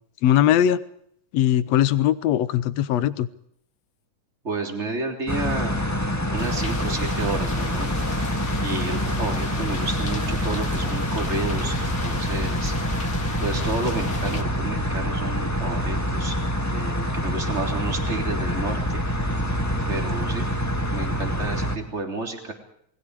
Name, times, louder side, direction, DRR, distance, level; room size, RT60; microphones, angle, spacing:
voice 1, 0.2-0.8 1.3-3.3, left 11 dB, 65° left, 15 dB, 1.9 m, -20 dB
voice 2, 4.4-5.8 6.3-7.9 8.6-12.8 13.4-16.4 16.7-19.0 19.9-20.5 20.9-22.5, right 3 dB, 20° right, 3 dB, 3.5 m, -31 dB
sound 1, 5.3-21.8, equal, 10° left, 1.0 m, -26 dB
sound 2, 6.4-14.4, left 4 dB, 35° left, 1.9 m, -39 dB
29.0 x 21.0 x 4.8 m, 0.70 s
omnidirectional pair, 3.5 m